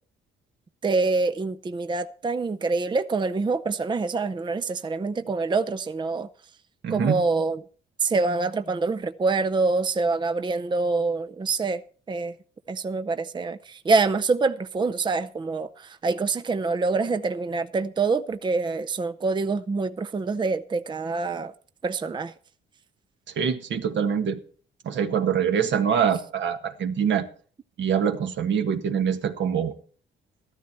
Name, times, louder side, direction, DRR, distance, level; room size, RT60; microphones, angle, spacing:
voice 1, 0.8-6.3 6.9-7.6 8.0-11.8 12.1-12.3 12.7-21.5 21.8-22.3, right 3 dB, 25° right, 0.6 m, -25 dB
voice 2, 6.8-7.2 23.4-24.4 24.8-27.3 27.8-29.7, right 7 dB, 65° right, 1.5 m, -24 dB
14.0 x 12.5 x 4.3 m
cardioid pair, 90°, 20 cm